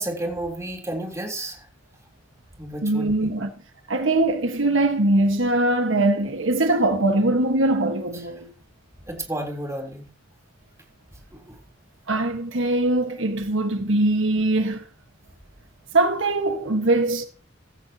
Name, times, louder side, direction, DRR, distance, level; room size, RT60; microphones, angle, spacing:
voice 1, 0.0-1.6 2.6-3.3 9.1-10.1 11.3-11.6, right 1 dB, 15° right, 3.6 m, -31 dB
voice 2, 2.8-3.5 3.9-8.4 12.1-14.8 15.9-17.2, right 2 dB, 80° right, 1.6 m, -21 dB
15.5 x 14.5 x 2.9 m
head